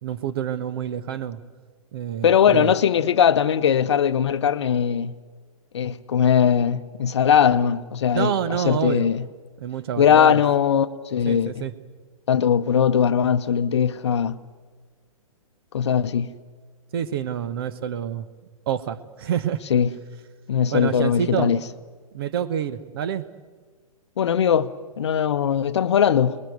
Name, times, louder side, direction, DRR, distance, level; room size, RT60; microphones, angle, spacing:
voice 1, 0.0-1.4 1.9-2.7 8.1-9.1 9.6-10.4 11.2-11.7 16.9-18.3 18.7-19.6 20.7-21.5 22.1-23.2, right 9 dB, 40° right, 1.1 m, -27 dB
voice 2, 2.2-5.1 5.7-9.2 10.0-11.6 12.3-14.4 15.7-16.3 19.7-19.9 20.5-21.6 24.2-26.4, left 8 dB, 50° left, 0.9 m, -20 dB
28.5 x 21.5 x 8.0 m
figure-of-eight pair, 120°, 19 cm